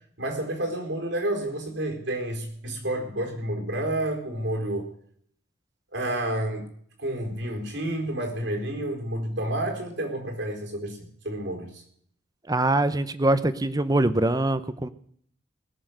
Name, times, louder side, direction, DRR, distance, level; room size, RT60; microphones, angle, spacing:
voice 1, 0.2-4.9 5.9-6.7 7.0-11.8, right 1 dB, 70° right, 2 dB, 4.4 m, -30 dB
voice 2, 12.5-14.9, right 2 dB, 20° right, 13 dB, 0.8 m, -23 dB
20.0 x 7.0 x 6.5 m, 0.62 s
head